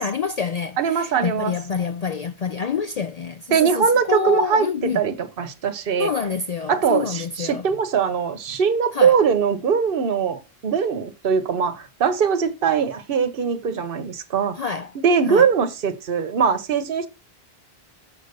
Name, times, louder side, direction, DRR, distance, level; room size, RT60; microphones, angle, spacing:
voice 1, 0.0-5.0 6.0-7.7 8.9-9.2 14.5-14.9 15.3-15.5, left 5 dB, 50° left, 0.5 m, -27 dB
voice 2, 0.8-1.5 3.5-4.7 4.9-6.1 6.7-14.5 15.0-17.1, right 6 dB, 65° right, 1.1 m, -21 dB
6.6 x 5.0 x 6.7 m
omnidirectional pair, 1.0 m